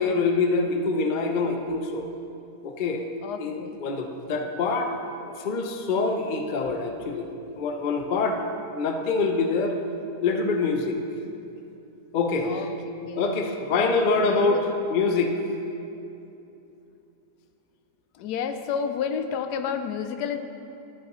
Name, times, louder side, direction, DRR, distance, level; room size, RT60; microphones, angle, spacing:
voice 1, 0.0-2.1 2.6-3.0 3.4-4.9 5.4-7.3 7.5-8.4 8.7-9.8 10.2-11.0 12.1-12.6 13.2-15.3, left 4 dB, 65° left, 4 dB, 0.5 m, -25 dB
voice 2, 3.2-3.8 12.4-12.7 13.0-13.4 13.7-13.9 14.2-14.6 18.1-20.4, left 7 dB, 85° left, 8 dB, 1.1 m, -31 dB
12.5 x 7.9 x 3.0 m, 2.8 s
omnidirectional pair, 1.7 m